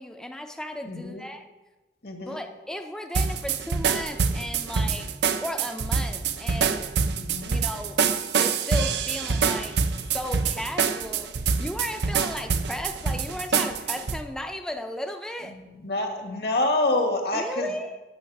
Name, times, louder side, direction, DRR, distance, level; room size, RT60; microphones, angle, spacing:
voice 1, 0.0-1.4 2.2-5.1 5.4-6.9 7.5-8.0 8.4-11.3 11.6-15.6 17.3-18.0, left 1 dB, 5° left, 5 dB, 0.5 m, -35 dB
voice 2, 0.9-1.2 2.0-2.4 7.0-7.6 15.5-17.7, left 2 dB, 60° left, 3 dB, 1.5 m, -27 dB
sound 1, 3.1-14.2, right 5 dB, 80° right, 0.6 m, -26 dB
8.6 x 6.9 x 6.0 m, 1.2 s
head